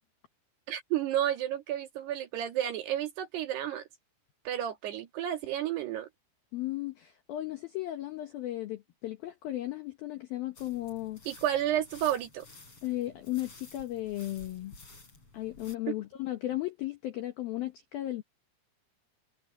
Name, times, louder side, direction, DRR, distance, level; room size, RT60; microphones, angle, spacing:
voice 1, 0.7-3.8 4.5-6.1 11.3-12.5, right 11 dB, 60° right, 3.7 m, -31 dB
voice 2, 6.5-11.2 12.8-14.7 15.3-18.2, left 15 dB, 75° left, 2.2 m, -35 dB
sound 1, 10.6-15.8, left 3 dB, 25° left, 6.8 m, -53 dB
omnidirectional pair, 5.9 m